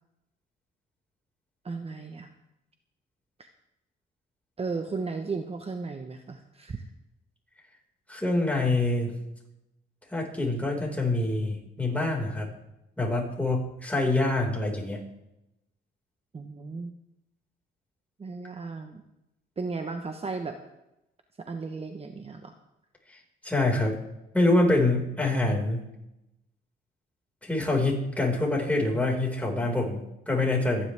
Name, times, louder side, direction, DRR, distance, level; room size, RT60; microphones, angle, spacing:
voice 1, 1.6-2.3 4.6-6.8 16.3-16.9 18.2-19.0 19.6-20.6 21.5-22.5, right 4 dB, 30° right, 5 dB, 1.2 m, -35 dB
voice 2, 8.1-9.1 10.1-12.5 13.0-15.0 23.4-24.0 24.3-25.8 27.4-30.9, left 2 dB, 5° left, -1 dB, 5.3 m, -25 dB
27.0 x 10.5 x 3.6 m, 0.90 s
cardioid pair, 90°, 20 cm